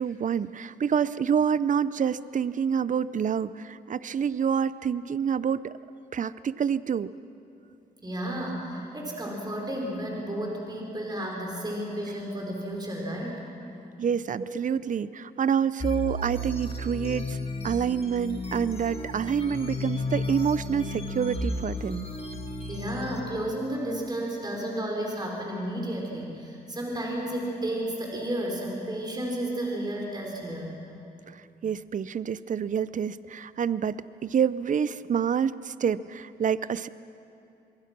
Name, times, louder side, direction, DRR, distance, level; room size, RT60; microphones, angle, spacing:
voice 1, 0.0-5.7 6.1-7.1 14.0-17.4 17.6-22.1 31.3-36.9, right 7 dB, 50° right, 17 dB, 0.6 m, -27 dB
voice 2, 8.0-13.4 14.4-14.5 22.7-30.8, right 1 dB, 25° right, -1 dB, 4.6 m, -32 dB
sound 1, 15.8-23.2, left 2 dB, 35° left, 2.6 m, -33 dB
25.5 x 22.0 x 6.1 m, 2.7 s
cardioid pair, 75°, 17 cm